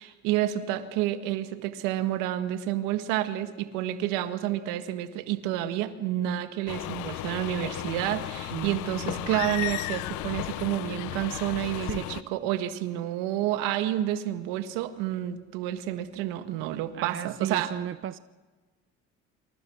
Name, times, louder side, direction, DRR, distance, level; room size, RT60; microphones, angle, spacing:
voice 1, 0.0-17.7, right 13 dB, 80° right, 9 dB, 1.8 m, -29 dB
sound 1, 6.7-12.2, left 18 dB, 70° left, 0.8 m, -34 dB
voice 2, 8.5-9.6 11.8-12.1 16.9-18.2, right 9 dB, 40° right, 15 dB, 0.7 m, -36 dB
28.0 x 26.0 x 6.3 m, 1.3 s
supercardioid pair, 70°, 31 cm